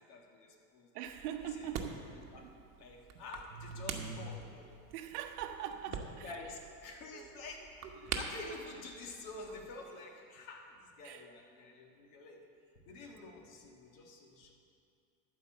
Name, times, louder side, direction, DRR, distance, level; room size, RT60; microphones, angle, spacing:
voice 1, 0.1-1.1 1.5-1.7 2.1-2.4 2.8-4.7 5.9-6.0 6.2-7.6 8.1-12.4 12.9-14.5, left 3 dB, 70° left, 2 dB, 1.8 m, -49 dB
voice 2, 0.9-2.0 2.4-2.5 3.1-3.2 3.5-4.3 4.9-6.3 7.1-7.4 8.0-8.1 11.0-11.3, right 8 dB, 85° right, 6 dB, 1.0 m, -43 dB
sound 1, 1.0-9.8, right 6 dB, 35° right, 1.0 m, -46 dB
12.5 x 4.6 x 7.5 m, 2.4 s
supercardioid pair, 120°, 44 cm